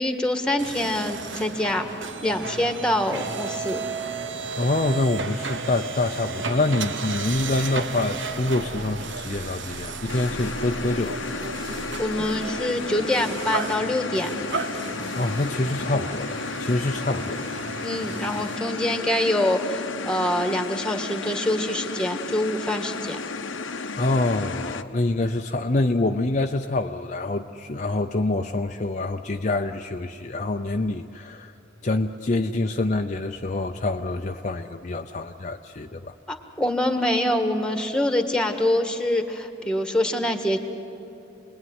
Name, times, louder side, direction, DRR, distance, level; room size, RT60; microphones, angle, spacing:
voice 1, 0.0-1.8 2.2-3.8 12.0-14.3 17.8-23.2 36.3-40.6, left 1 dB, 5° left, 6 dB, 1.6 m, -25 dB
sound 1, 0.6-18.6, right 4 dB, 75° right, 1.3 m, -34 dB
voice 2, 4.6-11.7 14.8-17.5 24.0-31.5 31.8-36.1, left 2 dB, 40° left, 5 dB, 0.6 m, -26 dB
sound 2, 10.1-24.8, left 4 dB, 85° left, 0.9 m, -33 dB
28.0 x 20.5 x 9.6 m, 2.8 s
head